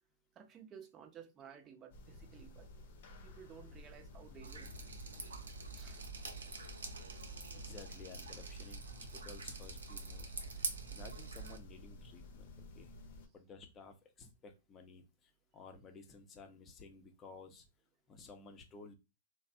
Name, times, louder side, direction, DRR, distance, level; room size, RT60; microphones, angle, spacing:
voice 1, 0.3-2.7 3.2-5.0 5.7-6.0, right 8 dB, 25° right, 0.6 m, -55 dB
sound 1, 1.9-13.3, left 2 dB, 55° left, 0.7 m, -54 dB
Drip, 4.4-11.6, right 4 dB, 80° right, 0.7 m, -45 dB
voice 2, 7.5-12.9 13.3-17.7 18.1-19.0, left 4 dB, 25° left, 0.6 m, -55 dB
3.1 x 2.0 x 2.6 m
hypercardioid pair, 120°, 0 cm